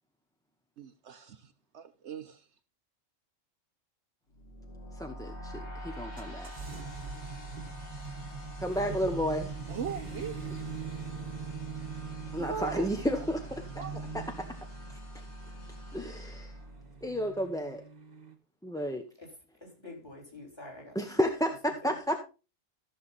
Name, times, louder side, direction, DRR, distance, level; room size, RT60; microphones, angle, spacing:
voice 1, 0.8-2.4 9.7-10.6 12.4-13.1 13.3-13.4 13.8-14.0, right 7 dB, 65° right, 1.0 m, -40 dB
sound 1, 4.3-17.4, equal, 60° left, 2.7 m, -45 dB
voice 2, 5.0-5.5 5.8-6.5 8.6-9.5 12.3-13.5 13.7-13.8 14.1-14.2 15.9-16.5 17.0-17.8 18.6-19.0 20.9-22.2, equal, 5° left, 0.7 m, -31 dB
sound 2, 6.2-18.3, right 6 dB, 35° right, 1.3 m, -43 dB
voice 3, 19.6-21.0 21.7-21.9, left 2 dB, 20° left, 3.9 m, -47 dB
14.0 x 6.7 x 4.1 m
omnidirectional pair, 1.3 m